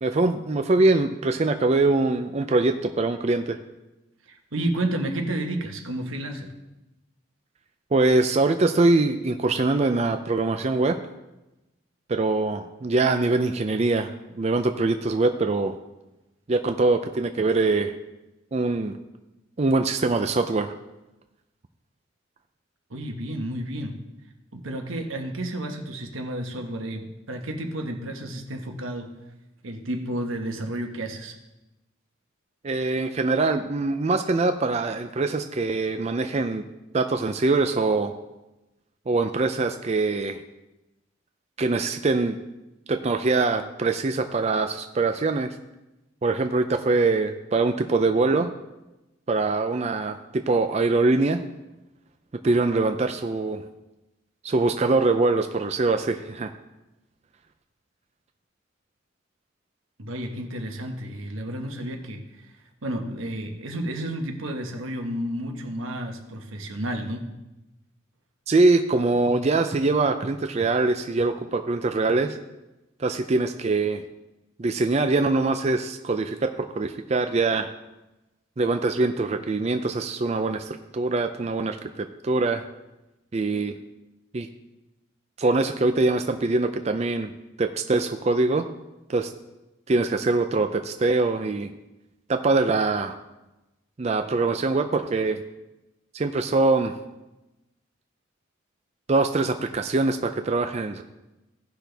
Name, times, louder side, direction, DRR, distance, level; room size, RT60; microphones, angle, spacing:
voice 1, 0.0-3.6 7.9-11.0 12.1-14.1 14.4-15.7 16.5-17.9 18.5-19.0 19.6-20.7 32.6-36.6 36.9-38.1 39.1-40.4 41.6-42.4 42.9-45.5 46.2-48.5 49.3-51.4 52.4-53.6 54.4-56.5 68.5-72.4 73.0-74.0 74.6-77.7 78.6-82.6 83.3-83.8 84.3-84.5 85.4-87.3 87.6-88.7 89.1-89.3 89.9-91.7 92.3-93.2 94.0-95.4 96.1-96.9 99.1-101.0, right 3 dB, 35° right, 7 dB, 0.4 m, -23 dB
voice 2, 4.3-6.5 22.9-24.0 24.5-29.1 29.6-31.3 60.0-62.5 62.8-67.3, right 1 dB, 90° right, 3 dB, 1.3 m, -31 dB
16.5 x 5.9 x 3.4 m, 1.0 s
head